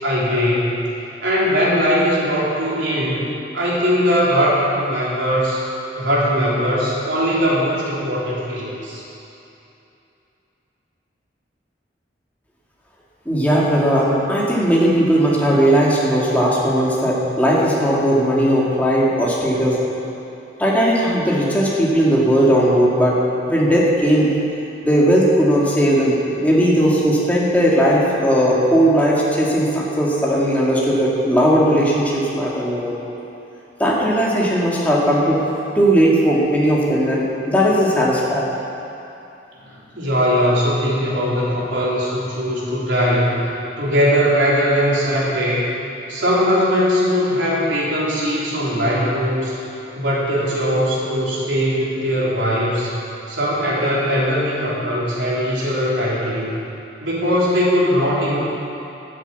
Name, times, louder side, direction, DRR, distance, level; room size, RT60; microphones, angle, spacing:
voice 1, 0.0-0.9 1.2-3.3 3.5-5.6 6.0-9.0 39.6-43.3 43.8-45.7 46.1-49.6 49.9-52.9 53.3-56.6 57.0-58.4, equal, 90° right, -7 dB, 3.7 m, -20 dB
voice 2, 13.3-19.8 20.6-24.3 24.8-32.9 33.8-35.4 35.7-38.5, equal, 10° left, -5 dB, 2.2 m, -17 dB
12.5 x 7.6 x 8.3 m, 2.9 s
head